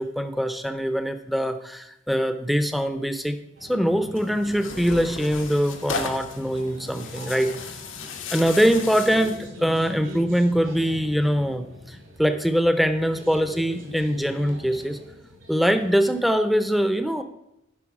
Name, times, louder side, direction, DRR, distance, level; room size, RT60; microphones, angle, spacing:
voice 1, 0.0-3.4 3.7-7.5 8.3-15.0 15.5-17.2, equal, ahead, 9 dB, 0.5 m, -23 dB
sound 1, 3.6-16.3, left 1 dB, 75° right, 2.5 m, -43 dB
Tearing, 4.1-9.5, left 4 dB, 85° left, 1.0 m, -35 dB
11.0 x 5.3 x 4.8 m, 0.84 s
head